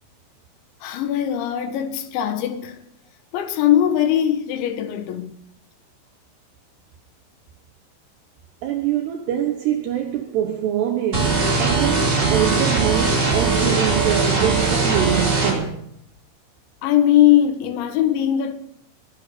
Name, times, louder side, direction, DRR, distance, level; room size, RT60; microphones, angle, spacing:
voice 1, 0.8-2.8 3.3-5.4 16.8-18.5, left 11 dB, 80° left, 3.7 m, -20 dB
voice 2, 8.6-15.8, right 10 dB, 70° right, 3.0 m, -24 dB
sound 1, 11.1-15.5, right 3 dB, 25° right, 4.6 m, -20 dB
23.0 x 9.1 x 6.8 m
omnidirectional pair, 5.3 m